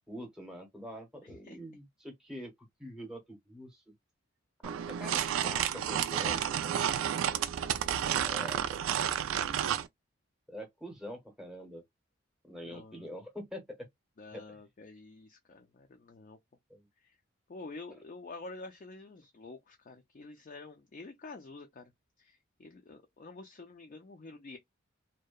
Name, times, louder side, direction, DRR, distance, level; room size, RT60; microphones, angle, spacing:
voice 1, 0.1-2.5 2.8-3.8 4.6-6.8 8.2-8.8 10.5-11.8 12.4-13.9 14.3-14.6 16.7-16.9, equal, 5° right, 0.7 m, -45 dB
voice 2, 1.2-1.6 12.6-13.1 14.2-16.4 17.0-17.1 17.5-21.9 22.2-24.6, left 3 dB, 40° left, 0.4 m, -48 dB
sound 1, 4.6-9.9, right 9 dB, 85° right, 0.3 m, -31 dB
2.7 x 2.1 x 2.2 m
head